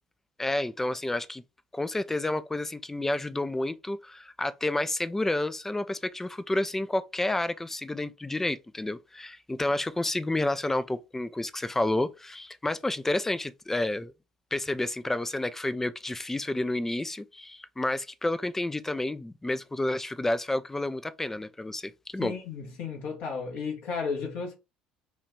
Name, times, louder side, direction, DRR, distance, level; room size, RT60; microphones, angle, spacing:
voice 1, 0.4-1.4 1.7-14.1 14.5-22.3, left 2 dB, 10° left, 0.3 m, -30 dB
voice 2, 22.2-24.5, left 5 dB, 55° left, 0.9 m, -33 dB
3.1 x 2.4 x 3.3 m
figure-of-eight pair, 60°, 4 cm